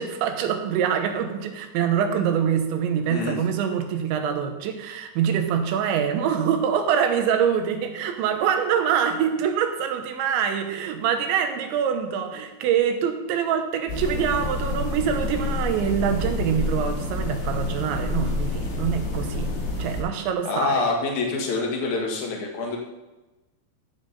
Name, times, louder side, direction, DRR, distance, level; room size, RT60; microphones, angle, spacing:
voice 1, 0.0-19.5 19.8-20.7, right 8 dB, 80° right, 6 dB, 3.3 m, -25 dB
sound 1, 13.9-20.0, left 2 dB, 70° left, 4.9 m, -28 dB
voice 2, 20.5-22.8, left 3 dB, 50° left, 0 dB, 2.6 m, -26 dB
15.5 x 7.1 x 4.1 m, 1.1 s
omnidirectional pair, 5.3 m